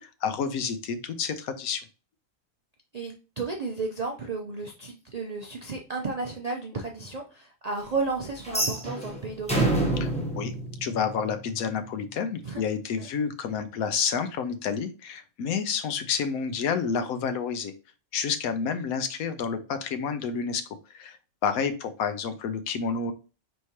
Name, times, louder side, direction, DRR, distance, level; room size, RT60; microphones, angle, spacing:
voice 1, 0.0-1.8 10.0-10.1 10.3-10.5 10.8-17.7 18.1-20.6 20.9-21.2 21.4-23.1, left 6 dB, 85° left, 10 dB, 1.1 m, -29 dB
voice 2, 2.9-9.8 12.4-12.6 13.0-13.1, right 3 dB, 60° right, 1 dB, 0.4 m, -33 dB
sound 1, 8.4-11.5, right 2 dB, 5° left, 0.6 m, -28 dB
4.7 x 3.4 x 2.8 m, 0.32 s
omnidirectional pair, 1.5 m